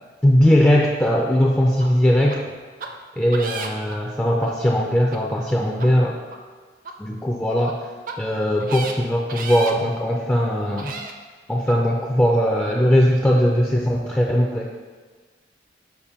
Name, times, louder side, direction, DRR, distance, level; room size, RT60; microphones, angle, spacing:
voice 1, 0.2-2.4 3.2-6.2 7.0-7.8 8.2-11.0 11.5-14.7, equal, 10° left, -2 dB, 0.3 m, -19 dB
sound 1, 1.8-1.9 2.3-2.4 2.8-2.9 3.3-3.9 4.4-4.5 5.1-5.2 5.7-5.9 6.3-6.4 6.8-6.9 7.6-7.7 8.1-8.2 8.6-8.9 9.3-9.7 10.3-10.4 10.8-11.1 11.7-11.8, right 4 dB, 50° right, 0.5 m, -33 dB
6.7 x 2.5 x 5.6 m, 1.5 s
head